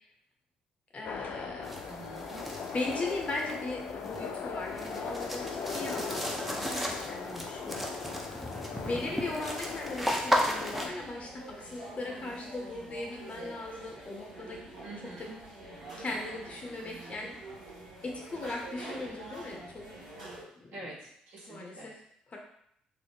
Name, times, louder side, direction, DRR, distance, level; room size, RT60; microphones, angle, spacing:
voice 1, 0.9-1.8 2.7-7.9 8.7-14.6 15.0-15.3 16.0-17.4 18.0-19.9 20.6-20.7 21.5-21.9 22.3-22.4, left 2 dB, 35° left, 0 dB, 0.8 m, -38 dB
sound 1, 1.0-10.9, left 5 dB, 55° left, 0.4 m, -39 dB
sound 2, 1.6-10.9, equal, 5° right, 0.6 m, -35 dB
voice 2, 1.8-2.5 8.8-9.2 14.8-16.0 16.8-17.3 20.7-21.9, right 2 dB, 55° right, -5 dB, 1.2 m, -48 dB
sound 3, 10.7-20.4, right 1 dB, 85° right, 1.3 m, -46 dB
3.3 x 2.0 x 3.3 m, 0.70 s
figure-of-eight pair, 50°, 4 cm